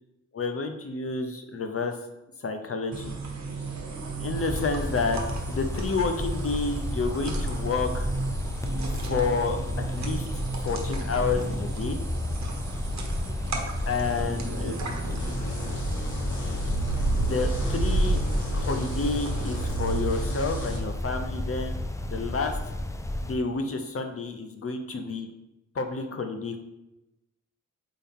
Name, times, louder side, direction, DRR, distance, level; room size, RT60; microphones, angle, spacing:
voice 1, 0.3-2.0 2.4-3.1 4.2-5.2 5.5-8.1 8.8-9.6 9.9-10.2 10.6-12.0 13.9-14.8 17.1-18.2 18.5-21.8 22.1-22.6 23.2-25.3 25.7-26.6, left 4 dB, 50° left, 6 dB, 0.7 m, -30 dB
sound 1, 2.9-19.7, right 2 dB, 65° right, 1.1 m, -33 dB
sound 2, 4.3-23.3, left 1 dB, 10° left, 0.4 m, -33 dB
sound 3, 15.2-20.8, right 2 dB, 75° left, 1.9 m, -32 dB
8.5 x 3.8 x 3.7 m, 0.96 s
wide cardioid pair, 130°, 30 cm